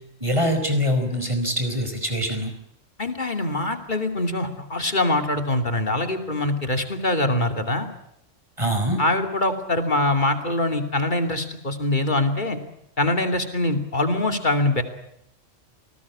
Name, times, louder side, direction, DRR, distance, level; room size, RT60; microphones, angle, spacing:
voice 1, 0.2-2.5 8.6-9.0, equal, 25° right, 6 dB, 5.1 m, -23 dB
voice 2, 3.0-7.9 9.0-12.6 13.0-14.8, left 2 dB, 40° left, 7 dB, 2.9 m, -23 dB
28.5 x 19.5 x 8.6 m, 0.78 s
omnidirectional pair, 1.3 m